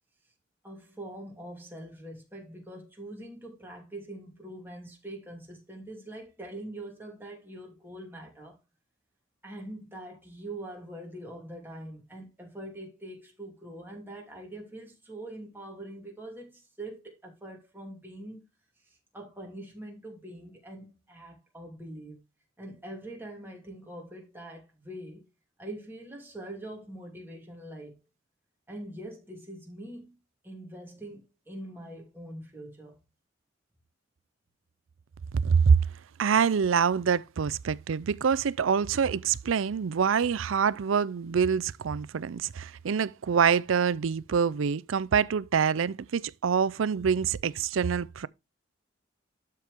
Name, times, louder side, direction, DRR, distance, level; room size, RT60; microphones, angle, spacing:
voice 1, 0.6-8.6 9.4-18.4 18.8-22.2 22.6-25.2 25.6-28.0 28.7-30.1 30.4-33.0, right 1 dB, 10° right, 3.0 m, -43 dB
voice 2, 35.3-35.8 36.2-48.3, right 6 dB, 80° right, 0.5 m, -25 dB
12.5 x 4.6 x 3.5 m
head